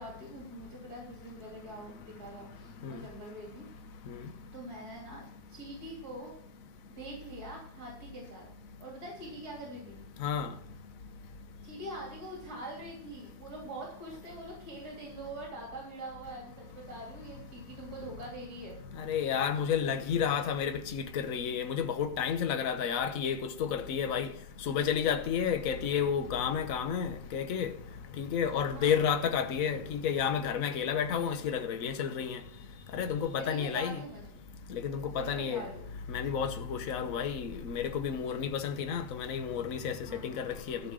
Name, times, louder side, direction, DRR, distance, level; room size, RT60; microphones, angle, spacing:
voice 1, 0.0-3.7 4.5-6.3 6.9-8.5 8.8-10.0 11.6-18.8 28.6-29.1 33.4-34.4 35.2-36.0 40.0-40.3, right 1 dB, 60° right, 3.7 m, -44 dB
voice 2, 19.0-24.3 24.7-27.7 28.2-32.4 32.9-34.0 34.7-35.7 36.1-40.8, left 7 dB, 55° left, 1.4 m, -31 dB
14.0 x 5.9 x 6.4 m
omnidirectional pair, 1.9 m